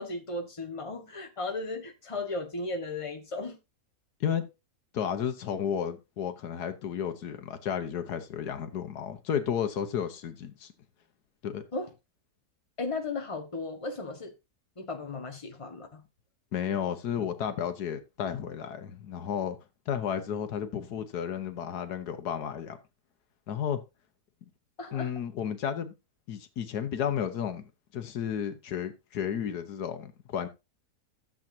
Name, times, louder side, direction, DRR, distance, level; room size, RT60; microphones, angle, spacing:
voice 1, 0.0-3.6 11.7-11.9 12.8-14.3 14.8-16.0 24.8-25.1, left 3 dB, 20° left, 1.5 m, -35 dB
voice 2, 4.9-10.7 11.4-11.6 16.5-19.6 19.9-22.8 23.5-23.8 24.9-25.9 26.3-27.6 27.9-30.5, left 8 dB, 80° left, 1.6 m, -32 dB
13.0 x 7.4 x 2.7 m
omnidirectional pair, 1.7 m